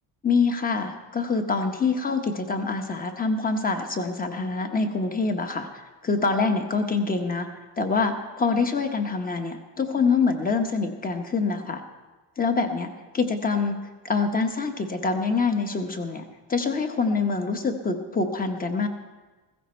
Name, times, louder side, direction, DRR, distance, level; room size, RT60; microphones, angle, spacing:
voice 1, 0.2-5.7 6.0-7.5 7.8-11.8 12.4-13.8 14.0-16.2 16.5-18.9, left 4 dB, 20° left, 6 dB, 1.0 m, -25 dB
15.5 x 15.0 x 4.4 m, 1.3 s
cardioid pair, 160°, 45 cm